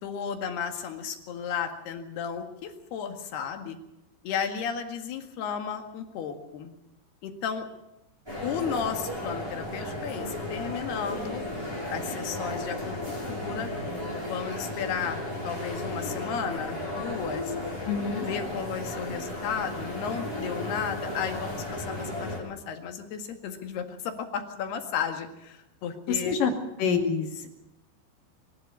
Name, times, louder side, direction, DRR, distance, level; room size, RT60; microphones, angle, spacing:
voice 1, 0.0-3.8 4.2-6.7 7.2-7.7 8.4-11.4 11.9-13.0 13.3-13.7 14.2-17.6 18.3-26.4, left 7 dB, 80° left, 6 dB, 4.0 m, -34 dB
sound 1, 8.3-22.4, left 1 dB, 5° right, 6.4 m, -34 dB
voice 2, 17.9-18.3 26.1-26.5 26.8-27.5, left 6 dB, 60° left, 4 dB, 3.8 m, -26 dB
23.5 x 12.0 x 9.6 m, 0.87 s
omnidirectional pair, 4.6 m